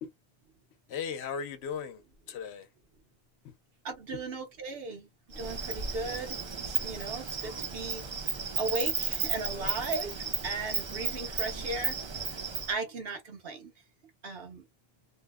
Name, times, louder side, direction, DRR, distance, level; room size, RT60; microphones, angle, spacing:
voice 1, 0.9-2.7 3.4-3.5 4.1-4.2, left 7 dB, 85° left, 0.9 m, -37 dB
voice 2, 3.8-8.0 8.6-12.3 12.7-13.7 14.2-14.6, right 3 dB, 70° right, 1.0 m, -37 dB
Insect, 5.3-12.7, right 5 dB, 45° right, 0.4 m, -34 dB
2.6 x 2.1 x 2.2 m
omnidirectional pair, 1.1 m